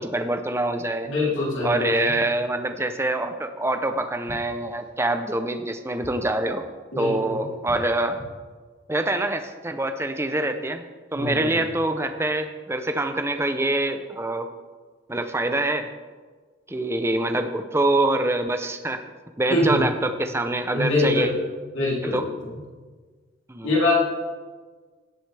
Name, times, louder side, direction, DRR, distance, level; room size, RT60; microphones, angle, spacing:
voice 1, 0.0-1.1 1.6-6.6 7.0-8.2 8.9-10.8 11.1-14.5 15.1-15.9 16.7-19.0 19.4-21.3 22.0-22.2 23.5-23.8, right 2 dB, 15° right, 7 dB, 0.6 m, -25 dB
voice 2, 1.0-1.9 6.9-7.4 11.1-11.5 19.5-19.8 20.7-21.4 21.7-22.3 23.6-23.9, left 2 dB, 65° left, -5 dB, 3.3 m, -23 dB
17.0 x 7.9 x 3.4 m, 1.4 s
head